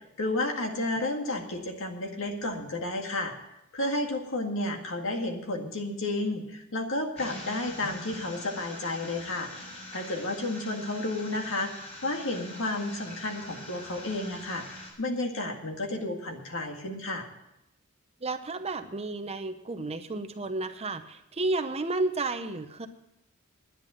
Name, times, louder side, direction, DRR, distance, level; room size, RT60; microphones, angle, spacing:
voice 1, 0.0-3.3 3.7-9.5 9.9-17.3, left 2 dB, 65° left, 3 dB, 2.0 m, -32 dB
sound 1, 7.2-14.9, left 1 dB, 30° left, 5.3 m, -44 dB
voice 2, 18.2-22.9, right 2 dB, 30° right, 9 dB, 0.7 m, -32 dB
10.5 x 9.9 x 7.6 m, 0.88 s
head